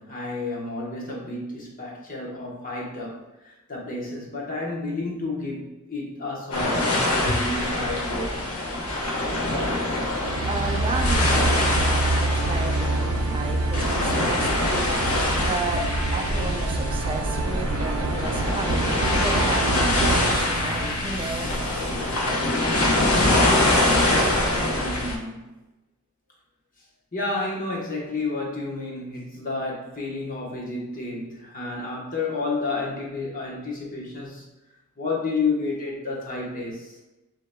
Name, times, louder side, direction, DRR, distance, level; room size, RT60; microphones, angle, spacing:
voice 1, 0.0-8.4 13.8-13.9 18.4-18.5 24.4-25.5 27.1-34.4 35.0-36.9, left 3 dB, 40° left, -3 dB, 1.1 m, -31 dB
sound 1, 6.5-25.1, left 1 dB, 85° left, 1.0 m, -24 dB
sound 2, 10.2-22.2, right 2 dB, 80° right, 0.4 m, -27 dB
voice 2, 10.5-14.8 15.4-18.9 19.2-22.2, right 2 dB, 25° right, 1 dB, 0.5 m, -33 dB
7.5 x 2.9 x 2.2 m, 1.0 s
head